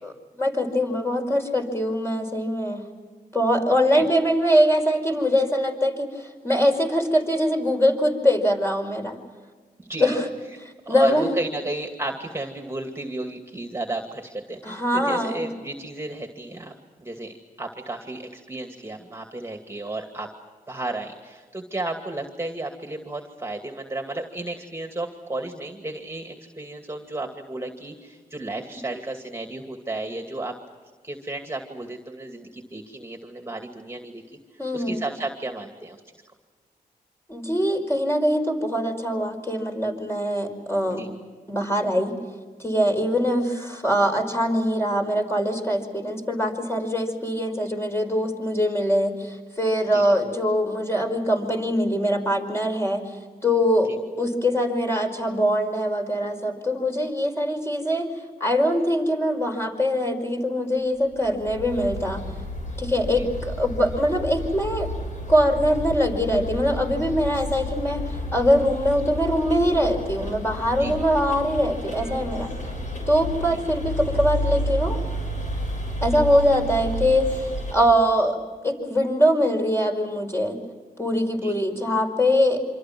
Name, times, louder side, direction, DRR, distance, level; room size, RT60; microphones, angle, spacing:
voice 1, 0.0-2.8 3.3-9.2 10.0-10.3 10.6-11.3 14.6-15.4 34.6-35.0 37.3-41.0 41.5-42.1 42.6-53.0 53.4-58.1 58.4-62.2 62.8-64.9 65.3-72.5 73.1-75.0 76.0-78.4 78.6-80.6 81.0-82.6, equal, 15° left, 2 dB, 5.4 m, -23 dB
voice 2, 9.8-10.1 10.9-16.7 17.0-20.3 20.7-30.6 31.0-34.4 34.7-36.0 40.9-41.1 49.9-50.0 53.8-54.0 63.1-63.3 70.7-71.0 73.4-73.6 81.3-81.5, right 2 dB, 15° right, 4 dB, 2.4 m, -33 dB
sound 1, 61.1-77.7, equal, 60° left, 7.4 m, -31 dB
27.5 x 26.0 x 6.2 m, 1.4 s
cardioid pair, 75°, 15 cm